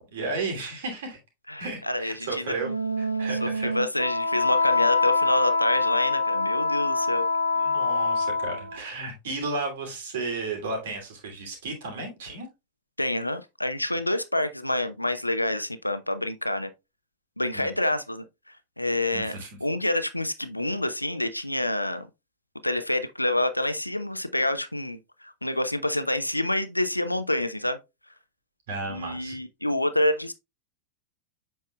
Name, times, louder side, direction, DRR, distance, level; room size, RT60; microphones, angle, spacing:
voice 1, 0.1-1.2 1.6-2.7 3.0-3.8 7.5-12.5 17.5-17.7 19.1-19.6 28.7-29.4, right 3 dB, 60° right, 2.7 m, -33 dB
voice 2, 1.5-2.5 3.4-7.3 13.0-16.7 17.4-18.2 18.8-19.3 19.6-22.1 22.6-27.8 28.9-30.3, left 1 dB, 85° left, 0.6 m, -27 dB
Wind instrument woodwind instrument, 2.6-8.8, left 3 dB, 90° right, 0.6 m, -25 dB
7.7 x 5.6 x 2.2 m
figure-of-eight pair, 90°, 0 cm